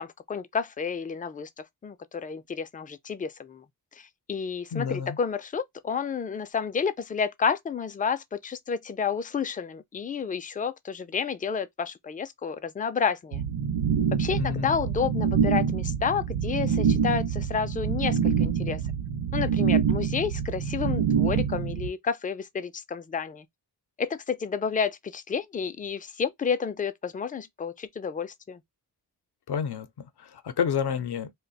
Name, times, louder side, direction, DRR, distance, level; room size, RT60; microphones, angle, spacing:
voice 1, 0.0-3.6 4.0-13.4 14.2-18.8 19.3-23.5 24.0-28.6, left 6 dB, 20° left, 0.3 m, -30 dB
voice 2, 4.7-5.2 14.4-14.8 29.5-29.9 30.2-31.3, left 7 dB, 70° left, 0.6 m, -29 dB
sound 1, 13.3-21.9, right 7 dB, 80° right, 0.7 m, -26 dB
2.3 x 2.2 x 3.9 m
wide cardioid pair, 80°, 42 cm